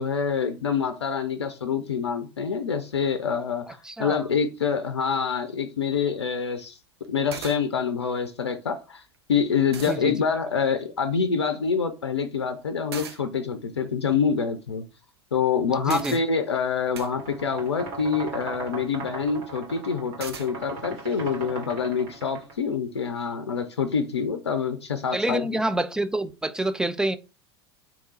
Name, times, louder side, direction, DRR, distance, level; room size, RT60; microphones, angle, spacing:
voice 1, 0.0-6.8 7.1-9.0 9.3-14.8 15.3-25.5, left 6 dB, 80° left, 0.5 m, -26 dB
voice 2, 3.8-4.2 9.9-10.1 15.9-16.2 25.1-27.2, right 1 dB, 5° right, 0.3 m, -27 dB
sound 1, 7.0-7.1 7.3-7.6 9.1-9.2 9.7-10.0 12.9-13.2 15.9-16.2 16.9-17.1 20.2-20.5, right 6 dB, 70° right, 0.7 m, -37 dB
sound 2, 16.8-22.5, right 3 dB, 50° right, 2.1 m, -38 dB
3.6 x 2.9 x 4.0 m
figure-of-eight pair, 80°, 14 cm